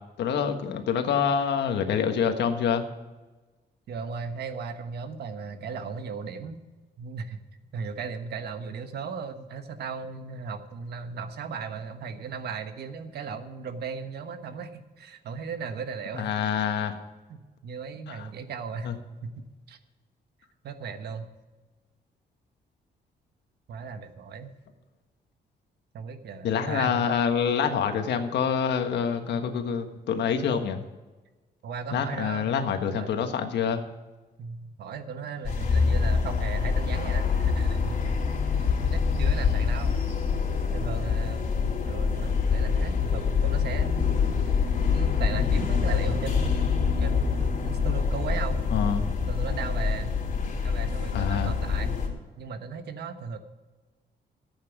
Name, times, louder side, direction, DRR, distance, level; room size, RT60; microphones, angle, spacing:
voice 1, 0.2-2.8 16.1-16.9 18.1-18.2 18.8-18.9 26.4-30.8 31.9-33.8 48.7-49.1 51.1-51.5, left 7 dB, 85° left, 6 dB, 1.5 m, -26 dB
voice 2, 3.9-6.6 7.0-7.4 7.7-16.3 17.3-19.0 19.2-19.3 19.7-19.8 20.6-21.3 23.7-24.5 25.9-27.2 31.6-33.2 34.4-38.1 38.5-40.0 40.7-44.3 44.9-48.6 49.3-50.2 50.6-52.0 52.4-53.4, right 5 dB, 70° right, 8 dB, 1.3 m, -37 dB
sound 1, 35.4-52.1, left 5 dB, 50° left, 3.8 m, -25 dB
13.5 x 8.7 x 6.0 m, 1.2 s
cardioid pair, 145°, 17 cm